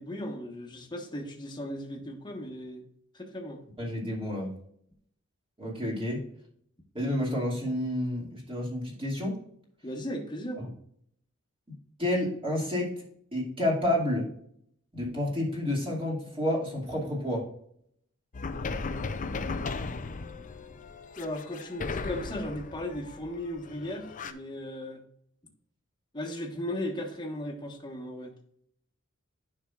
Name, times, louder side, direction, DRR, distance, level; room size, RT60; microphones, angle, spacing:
voice 1, 0.0-2.8 3.1-3.6 9.8-10.6 21.2-25.0 26.1-28.3, left 1 dB, 20° left, 1 dB, 1.3 m, -36 dB
voice 2, 3.8-4.5 5.6-6.2 6.9-9.4 10.6-10.7 12.0-12.9 13.3-14.2 14.9-17.4, left 1 dB, 25° right, -3 dB, 2.4 m, -29 dB
sound 1, 18.3-24.3, left 4 dB, 40° left, 0.5 m, -36 dB
9.9 x 5.9 x 2.4 m, 0.68 s
head